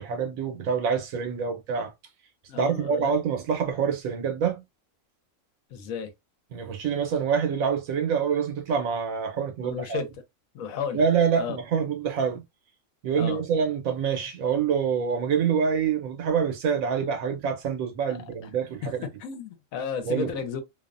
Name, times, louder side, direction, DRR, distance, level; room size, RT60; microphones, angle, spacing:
voice 1, 0.0-1.9 2.6-4.6 6.5-10.0 10.9-12.4 13.0-19.1 20.0-20.3, right 6 dB, 90° right, 1.2 m, -26 dB
voice 2, 2.5-3.1 5.7-6.1 9.6-10.1 10.5-11.1 11.4-11.6 13.2-13.4 18.1-18.2 18.8-18.9 19.2-20.6, left 6 dB, 80° left, 1.1 m, -33 dB
2.8 x 2.0 x 2.4 m
omnidirectional pair, 1.4 m